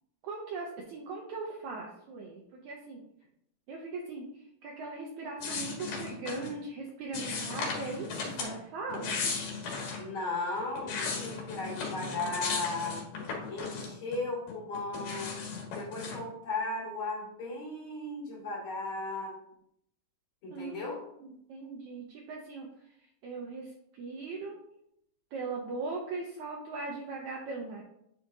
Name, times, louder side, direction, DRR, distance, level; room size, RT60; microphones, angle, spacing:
voice 1, 0.2-3.0 3.7-4.3 4.6-9.2 20.5-20.9 21.2-22.7 23.2-24.6 25.3-27.8, right 3 dB, 70° right, -1 dB, 1.9 m, -39 dB
sound 1, 5.4-6.5 7.1-8.5 8.9-10.0 10.6-14.2 14.5-16.2, left 4 dB, 70° left, 3.1 m, -36 dB
voice 2, 10.0-13.1 13.5-15.4 15.7-19.4 20.4-21.0, left 2 dB, 40° left, -5 dB, 3.1 m, -36 dB
9.7 x 5.0 x 2.8 m, 0.76 s
omnidirectional pair, 4.0 m